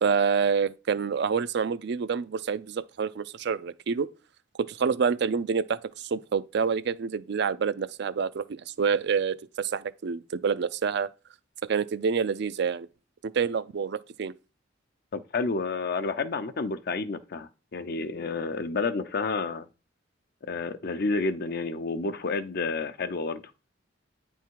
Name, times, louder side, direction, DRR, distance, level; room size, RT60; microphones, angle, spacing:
voice 1, 0.0-4.1 4.6-11.1 11.6-12.9 13.2-14.3, right 6 dB, 60° right, 0.4 m, -27 dB
voice 2, 15.1-19.7 20.4-23.4, left 3 dB, 55° left, 0.6 m, -30 dB
9.2 x 3.5 x 4.6 m
head